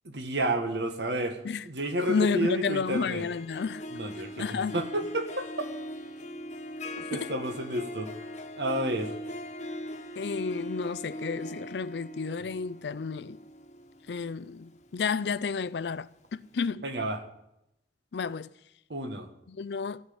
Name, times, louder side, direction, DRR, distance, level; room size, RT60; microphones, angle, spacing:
voice 1, 0.0-3.3 3.9-5.7 7.0-8.1 8.6-9.2 16.8-17.2 18.9-19.3, right 1 dB, 80° right, 1.7 m, -31 dB
Harp, 1.8-15.7, left 1 dB, 40° left, 1.3 m, -41 dB
voice 2, 2.1-3.8 4.4-4.8 7.1-7.3 10.2-13.4 14.1-16.8 18.1-18.5 19.5-20.0, left 5 dB, 75° left, 0.5 m, -31 dB
16.0 x 5.8 x 8.6 m
head